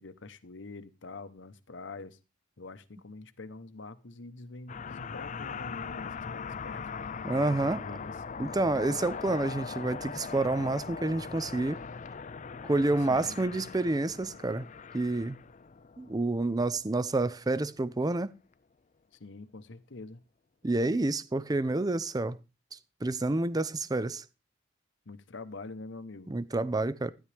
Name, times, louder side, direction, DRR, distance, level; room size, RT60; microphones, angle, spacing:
voice 1, 0.0-2.2 2.6-6.9 7.5-8.0 8.4-8.6 13.0-13.4 19.2-20.2 25.1-26.3, left 3 dB, 60° left, 0.9 m, -45 dB
sound 1, 4.7-17.4, left 5 dB, 40° left, 0.5 m, -40 dB
voice 2, 7.2-7.8 8.4-11.8 12.6-14.7 14.9-15.4 16.0-18.3 20.6-22.4 23.0-24.2 26.3-27.1, right 2 dB, 20° right, 0.5 m, -29 dB
12.5 x 10.5 x 3.4 m
head